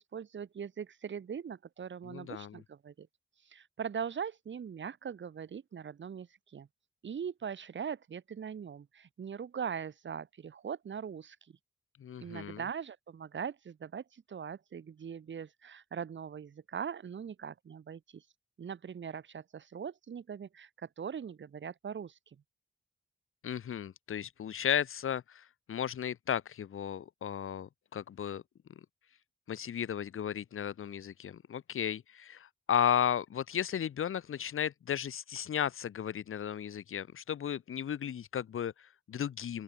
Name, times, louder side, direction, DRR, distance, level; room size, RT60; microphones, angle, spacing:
voice 1, 0.0-3.1 3.5-6.7 7.0-11.4 12.2-18.2 18.6-22.1, right 7 dB, 65° right, 2.0 m, -41 dB
voice 2, 2.0-2.6 12.0-12.6 23.4-28.4 29.5-39.6, left 9 dB, 90° left, 1.3 m, -34 dB
open air
wide cardioid pair, 160°, 21 cm